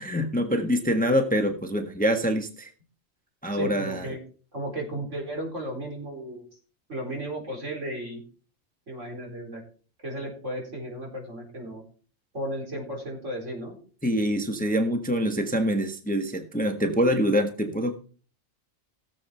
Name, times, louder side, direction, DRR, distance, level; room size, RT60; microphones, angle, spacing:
voice 1, 0.0-2.7 3.4-4.1 14.0-17.9, equal, 5° left, 5 dB, 1.2 m, -25 dB
voice 2, 3.5-4.2 4.5-6.4 6.9-8.2 8.9-9.6 10.0-11.8 12.3-13.7, right 1 dB, 65° right, 0 dB, 4.6 m, -34 dB
17.0 x 7.6 x 4.4 m, 0.40 s
omnidirectional pair, 1.4 m